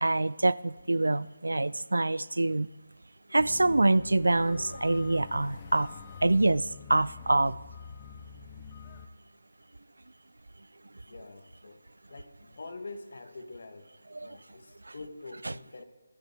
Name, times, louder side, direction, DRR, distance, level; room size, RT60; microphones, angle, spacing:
voice 1, 0.0-2.7 3.3-5.9 6.2-7.6 14.1-14.4, right 2 dB, 80° right, 20 dB, 0.3 m, -25 dB
sound 1, 3.4-9.1, left 6 dB, 30° left, 0.8 m, -46 dB
voice 2, 11.0-11.8 12.1-13.9 14.2-15.8, left 3 dB, 60° left, 8 dB, 1.4 m, -45 dB
23.0 x 7.9 x 3.5 m, 1.2 s
figure-of-eight pair, 155°, 0 cm